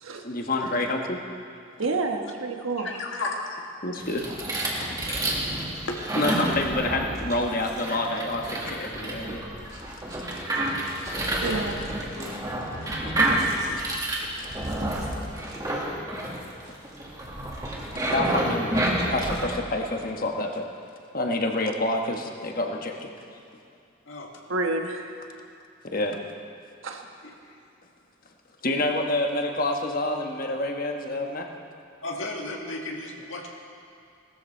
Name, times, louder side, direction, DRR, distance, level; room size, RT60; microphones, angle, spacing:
voice 1, 0.2-1.2 3.8-4.4 4.8-5.0 6.2-9.4 12.2-12.4 13.0-13.9 14.4-14.5 18.1-18.7 19.1-20.7 21.1-23.1 25.8-26.2 28.6-31.5, left 2 dB, 45° left, 3 dB, 1.2 m, -28 dB
voice 2, 1.8-2.9 11.4-11.9 24.5-25.1 26.8-27.0, right 3 dB, 85° right, 3 dB, 1.3 m, -29 dB
voice 3, 2.8-3.5 5.0-5.2 5.9-6.0 24.1-24.3 32.0-33.5, left 2 dB, 75° left, 0 dB, 1.9 m, -33 dB
sound 1, 4.0-19.4, right 1 dB, 20° right, 1.8 m, -29 dB
18.0 x 13.5 x 4.5 m, 2.5 s
head